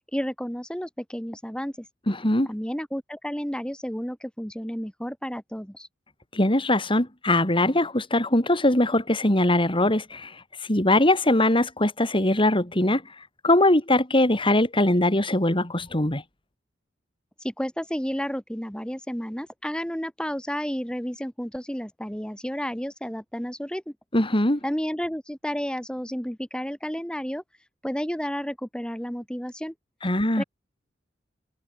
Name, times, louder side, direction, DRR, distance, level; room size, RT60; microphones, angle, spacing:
voice 1, 0.1-1.9 2.5-5.9 17.4-23.9 24.6-27.4 27.8-29.7 30.4-30.5, equal, 5° left, 2.5 m, -31 dB
voice 2, 2.1-2.5 6.3-13.0 13.4-16.2 24.1-24.6 30.0-30.4, left 1 dB, 30° left, 3.8 m, -21 dB
head